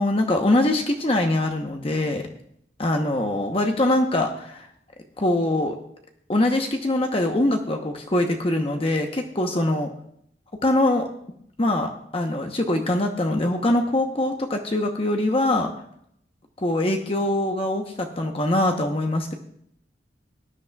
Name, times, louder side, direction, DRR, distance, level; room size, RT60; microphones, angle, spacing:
voice 1, 0.0-2.3 2.8-4.7 5.2-5.8 6.3-9.9 10.6-11.1 11.6-15.7 16.6-19.3, left 1 dB, 30° left, 3 dB, 0.9 m, -23 dB
19.0 x 10.5 x 2.3 m, 0.70 s
head